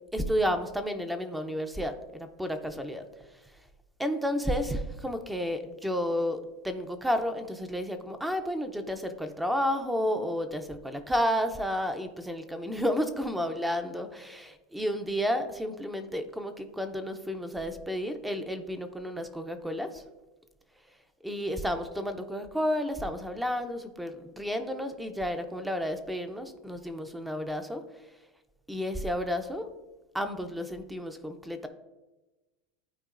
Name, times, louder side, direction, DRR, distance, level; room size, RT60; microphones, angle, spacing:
voice 1, 0.1-3.0 4.0-20.0 21.2-27.8 28.7-29.7 30.1-31.7, equal, 5° right, 8 dB, 0.4 m, -31 dB
12.0 x 4.5 x 2.4 m, 1.1 s
supercardioid pair, 170°, 0 cm